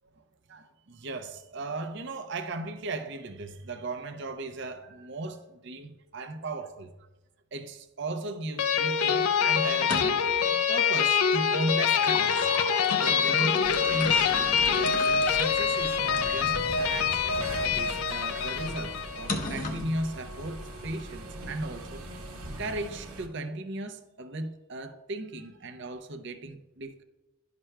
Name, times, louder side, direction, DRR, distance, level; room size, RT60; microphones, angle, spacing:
voice 1, 0.5-6.9 7.5-10.3 10.7-12.5 13.0-22.0 22.6-27.0, right 2 dB, 55° right, 0.6 m, -36 dB
sound 1, 8.6-19.3, left 7 dB, 75° left, 0.5 m, -25 dB
sound 2, 9.8-10.4 11.7-16.5 17.2-17.3 19.3-19.9, left 2 dB, 35° left, 0.7 m, -36 dB
sound 3, 13.6-23.3, right 1 dB, 80° right, 1.1 m, -41 dB
11.0 x 6.0 x 2.2 m
head